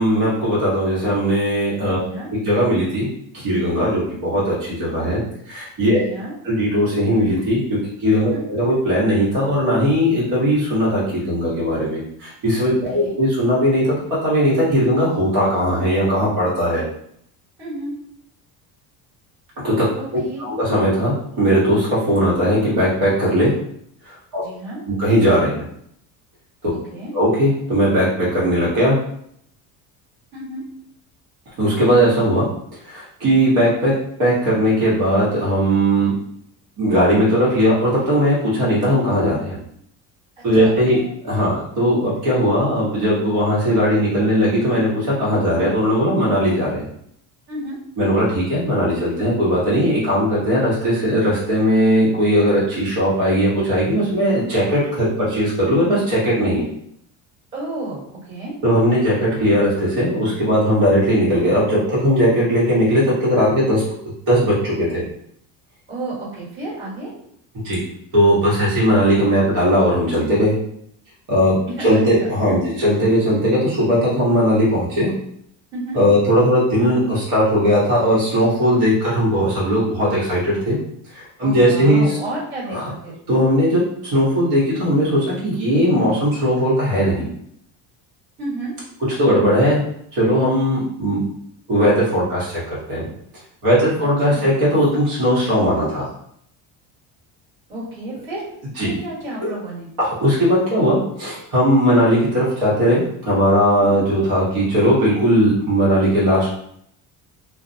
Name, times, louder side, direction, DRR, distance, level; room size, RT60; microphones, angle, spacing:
voice 1, 0.0-2.0 2.4-3.1 3.3-6.0 6.4-13.9 14.2-16.8 19.6-19.9 20.1-23.5 24.3-24.4 24.9-25.6 27.1-29.0 31.6-32.5 32.9-33.9 34.2-36.1 36.8-39.6 40.4-41.0 41.2-46.9 48.0-56.7 58.6-63.8 64.3-65.0 67.6-67.8 68.1-70.6 71.3-75.1 75.9-80.8 81.1-82.2 82.7-82.9 83.3-83.8 84.1-87.3 89.2-89.8 90.1-91.2 91.7-92.6 92.9-93.0 93.6-96.1 98.8-98.9 99.4-99.5 100.0-106.5, equal, 60° right, -7 dB, 1.1 m, -18 dB
voice 2, 2.0-2.3 6.0-6.3 8.3-8.4 12.9-13.1 17.6-17.9 19.9-20.5 24.4-24.8 26.7-27.1 30.3-30.6 40.6-41.1 47.5-47.8 57.5-58.5 65.9-67.1 71.8-72.3 75.7-76.0 81.4-83.1 88.4-88.7 94.3-94.6 97.7-98.4 98.8-99.9 103.8-104.0, right 2 dB, 30° right, -8 dB, 1.3 m, -31 dB
2.4 x 2.0 x 2.6 m, 0.70 s
cardioid pair, 135°, 40 cm